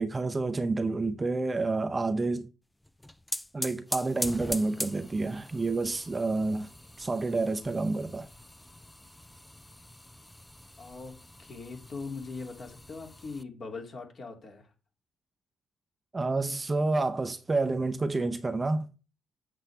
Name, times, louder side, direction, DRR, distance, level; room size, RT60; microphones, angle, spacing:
voice 1, 0.0-2.5 3.5-6.7 7.0-8.3 16.1-19.0, right 3 dB, 25° right, 0.8 m, -29 dB
sound 1, 2.8-13.4, left 1 dB, 10° left, 0.4 m, -41 dB
voice 2, 10.8-11.1 11.4-14.7, left 4 dB, 50° left, 2.6 m, -41 dB
7.9 x 7.2 x 3.4 m
cardioid pair, 90°, 0 cm